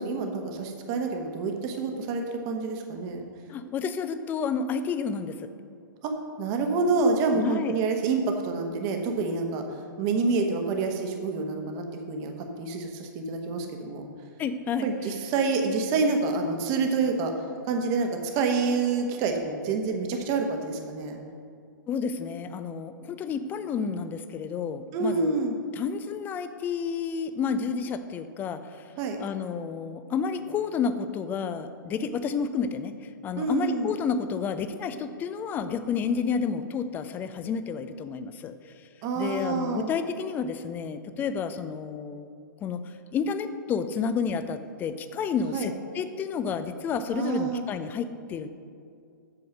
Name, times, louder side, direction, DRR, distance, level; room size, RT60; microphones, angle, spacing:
voice 1, 0.0-3.2 6.0-6.1 6.4-9.6 10.0-14.0 14.8-17.3 17.7-21.2 24.9-25.5 29.0-29.2 33.4-33.9 39.0-39.9 45.5-45.7 47.1-47.7, right 4 dB, 30° right, 4 dB, 1.2 m, -27 dB
voice 2, 3.5-5.5 7.3-7.8 14.4-14.9 21.9-25.4 25.7-28.8 29.2-38.5 39.2-42.3 42.6-42.8 43.1-48.5, left 6 dB, 15° left, 11 dB, 0.5 m, -30 dB
8.1 x 6.9 x 6.5 m, 2.4 s
figure-of-eight pair, 115°, 11 cm